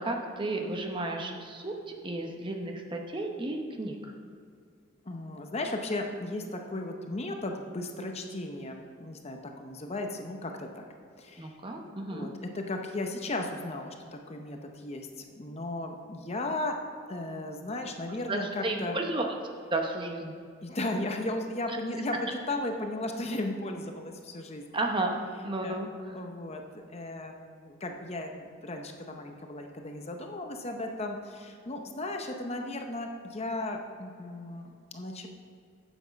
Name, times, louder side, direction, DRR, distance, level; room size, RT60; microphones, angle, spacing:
voice 1, 0.0-1.8 2.0-4.1 11.4-12.3 18.1-19.2 19.7-20.3 21.7-21.8 24.7-25.1 25.4-26.2, right 2 dB, 25° right, 3 dB, 0.8 m, -33 dB
voice 2, 5.1-10.9 11.2-11.6 12.1-16.8 17.1-19.0 20.6-24.8 25.6-25.8 26.1-26.6 26.9-35.3, left 2 dB, 30° left, 4 dB, 0.7 m, -35 dB
9.4 x 7.2 x 5.2 m, 2.3 s
head